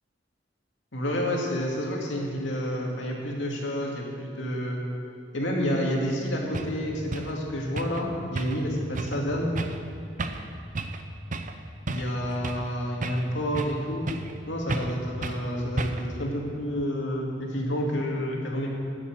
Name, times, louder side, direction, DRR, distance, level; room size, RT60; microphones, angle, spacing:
voice 1, 0.9-4.8 5.3-9.5 11.9-14.1 14.5-18.7, equal, 80° left, -2 dB, 2.3 m, -29 dB
sound 1, 6.1-6.2 6.5-6.7 7.1-7.3 7.8-8.0 8.4-8.7 8.9-9.2 9.6-9.8 10.2-10.5 10.8-11.0 11.3-11.6 11.9-12.7 13.0-13.8 14.1-14.4 14.7-15.0 15.2-15.4 15.8-16.2, right 2 dB, 45° right, 0.7 m, -32 dB
11.5 x 7.3 x 7.7 m, 2.6 s
head